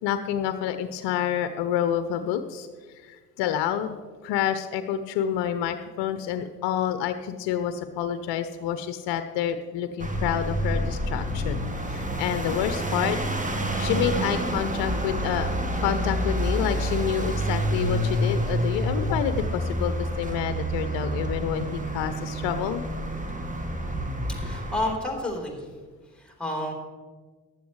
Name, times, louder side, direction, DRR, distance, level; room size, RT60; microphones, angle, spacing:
voice 1, 0.0-2.7 2.9-13.2 13.8-22.8, left 9 dB, 60° left, 10 dB, 0.8 m, -28 dB
sound 1, 10.0-24.9, right 1 dB, 15° right, 1.6 m, -28 dB
voice 2, 24.4-25.6 26.2-26.7, left 1 dB, ahead, -1 dB, 3.7 m, -30 dB
15.0 x 11.5 x 3.2 m, 1.5 s
figure-of-eight pair, 50°, 49 cm